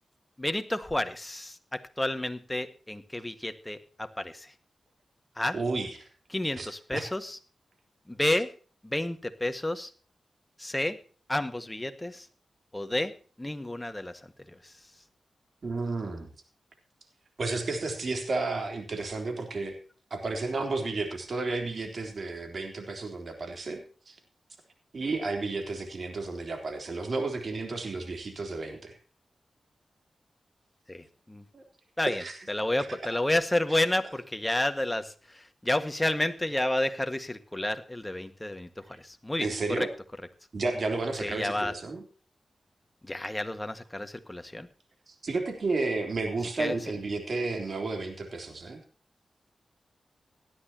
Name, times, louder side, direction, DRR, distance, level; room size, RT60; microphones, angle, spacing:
voice 1, 0.4-4.5 5.4-5.6 6.3-7.4 8.1-8.5 8.8-9.9 10.6-11.0 11.3-12.3 12.7-14.7 30.9-31.4 32.0-32.2 32.5-39.5 39.8-39.9 41.2-41.7 43.0-44.7 46.6-46.8, left 1 dB, 15° left, 9 dB, 1.7 m, -30 dB
voice 2, 5.5-6.1 6.6-7.1 15.6-16.3 17.4-19.8 20.1-24.2 24.9-29.0 31.5-31.6 32.1-32.4 32.9-33.0 39.4-39.9 40.5-42.0 45.1-48.8, right 3 dB, 60° right, 5 dB, 3.6 m, -32 dB
18.0 x 11.5 x 2.9 m, 0.38 s
cardioid pair, 50°, 0 cm